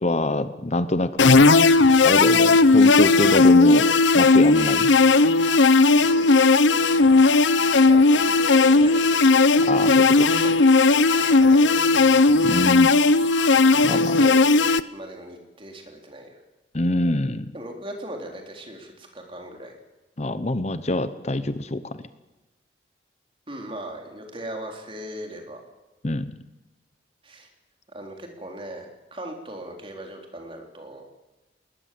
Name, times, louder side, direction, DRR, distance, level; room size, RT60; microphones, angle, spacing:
voice 1, 0.0-1.4 2.0-3.9 4.1-4.9 9.7-10.4 12.4-12.9 13.8-14.1 16.7-17.5 20.2-21.8 26.0-26.3, left 2 dB, 35° left, 12 dB, 0.8 m, -25 dB
sound 1, 1.2-14.8, left 3 dB, 85° left, 0.8 m, -16 dB
voice 2, 6.0-6.5 7.4-9.3 10.8-11.0 11.3-11.7 13.6-14.5 14.9-16.4 17.5-19.7 23.5-25.6 27.2-27.5 27.9-31.1, right 1 dB, 30° right, 2 dB, 3.8 m, -39 dB
21.0 x 20.0 x 7.8 m, 1.1 s
head